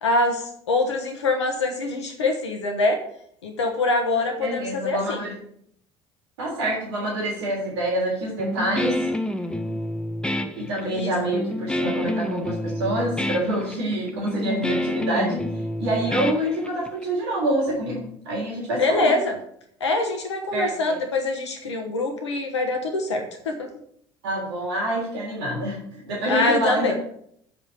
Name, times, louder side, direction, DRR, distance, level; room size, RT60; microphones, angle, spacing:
voice 1, 0.0-3.0 3.4-5.2 10.8-11.1 18.8-19.3 19.8-23.7 26.3-26.9, left 2 dB, 85° left, 4 dB, 1.0 m, -24 dB
voice 2, 4.4-5.3 6.4-9.1 10.5-15.4 15.8-19.2 20.5-21.0 24.2-26.9, right 1 dB, 75° right, -4 dB, 3.4 m, -26 dB
Guitar, 8.4-17.0, left 1 dB, 5° left, 0.8 m, -28 dB
7.2 x 5.3 x 7.2 m, 0.68 s
hypercardioid pair, 60°, 14 cm